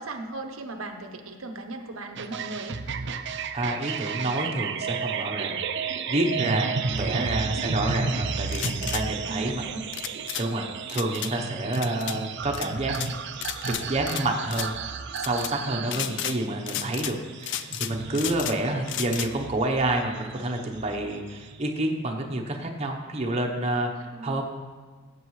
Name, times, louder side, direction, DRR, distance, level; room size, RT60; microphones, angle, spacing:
voice 1, 0.0-2.8 6.8-7.4 9.2-9.8 15.7-16.2 24.0-24.4, right 2 dB, 80° right, 5 dB, 0.8 m, -38 dB
sound 1, 2.2-21.6, right 5 dB, 55° right, 0.5 m, -33 dB
voice 2, 3.5-5.6 6.1-9.6 10.4-12.9 13.8-14.8 15.2-23.9 24.2-24.5, right 1 dB, 30° right, 2 dB, 0.9 m, -28 dB
sound 2, 8.5-9.0 9.9-10.5 10.9-11.3 11.7-12.2 12.5-13.1 13.4-14.2 14.5-14.7 15.2-15.5 15.9-16.4 16.7-17.1 17.4-18.6 18.9-19.3, left 11 dB, 60° left, 0.4 m, -33 dB
15.5 x 7.7 x 3.2 m, 1.4 s
head